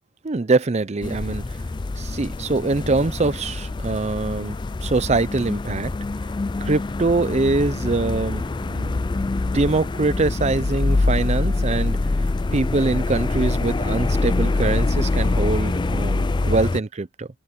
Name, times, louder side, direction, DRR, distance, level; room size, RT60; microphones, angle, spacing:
voice 1, 0.2-1.4 2.0-5.9 6.6-9.0 9.5-12.0 12.5-17.3, right 3 dB, 30° right, 0.5 m, -23 dB
sound 1, 1.0-16.8, left 2 dB, 20° left, 0.3 m, -24 dB
head